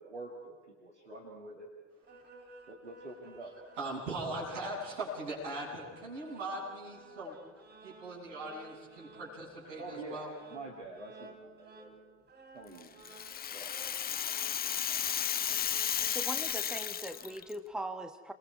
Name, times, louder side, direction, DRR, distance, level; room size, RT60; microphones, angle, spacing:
voice 1, 0.0-1.7 2.7-3.5 9.8-12.0 12.5-13.8, right 2 dB, 90° right, -2 dB, 1.9 m, -46 dB
sound 1, 2.0-17.4, right 2 dB, 30° right, 3.6 m, -55 dB
voice 2, 3.8-7.3 7.8-10.3, right 2 dB, 70° right, -5 dB, 7.7 m, -40 dB
Rattle (instrument), 12.8-17.5, left 9 dB, 25° left, 0.6 m, -34 dB
voice 3, 16.1-18.3, right 1 dB, ahead, 8 dB, 1.3 m, -40 dB
28.5 x 22.0 x 4.8 m, 1.4 s
figure-of-eight pair, 55°, 34 cm